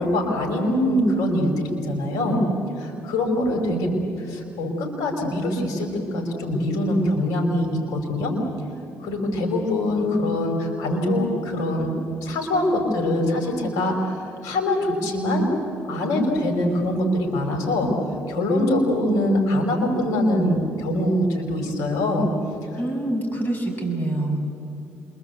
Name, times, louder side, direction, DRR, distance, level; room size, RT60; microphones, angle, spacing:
voice 1, 0.0-2.4 2.8-3.9 4.3-8.3 9.0-11.9 12.2-15.5 15.9-17.9 18.3-22.3, left 1 dB, 80° left, 3 dB, 5.1 m, -23 dB
voice 2, 3.7-4.0 22.8-24.5, right 1 dB, 30° left, 3 dB, 6.6 m, -26 dB
27.5 x 23.5 x 8.2 m, 2.5 s
supercardioid pair, 70°, 6 cm